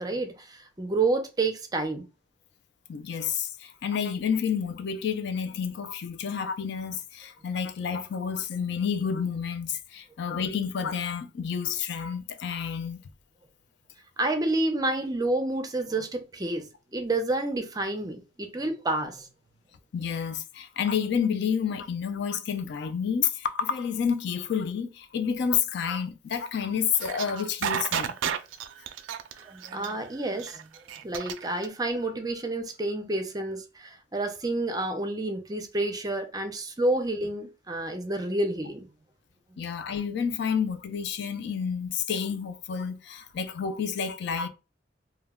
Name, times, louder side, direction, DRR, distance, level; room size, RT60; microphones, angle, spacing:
voice 1, 0.0-2.1 14.2-16.6 16.9-19.3 29.5-30.6 31.0-38.9 39.5-39.6, right 2 dB, 20° right, 0.5 m, -29 dB
voice 2, 2.9-13.0 19.9-28.2 39.6-44.5, left 7 dB, 65° left, 0.4 m, -29 dB
sound 1, 26.9-31.7, right 8 dB, 85° right, 0.3 m, -31 dB
2.2 x 2.1 x 3.4 m
head